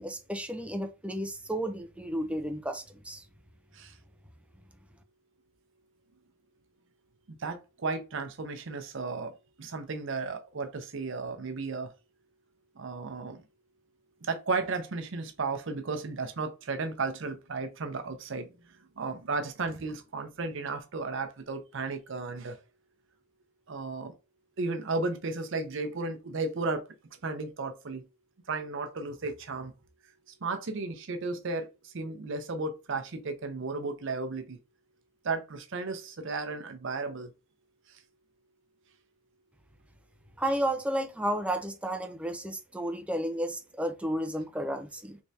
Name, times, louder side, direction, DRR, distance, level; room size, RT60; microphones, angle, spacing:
voice 1, 0.0-3.2 40.4-45.2, right 1 dB, 5° right, 0.4 m, -32 dB
voice 2, 7.4-9.3 9.6-11.9 12.8-13.4 14.3-18.5 19.0-22.6 23.7-24.1 24.6-26.8 27.2-28.0 28.5-29.7 30.4-31.7 31.9-34.6 35.2-37.3, right 3 dB, 60° right, 0.6 m, -34 dB
3.4 x 3.2 x 2.7 m
head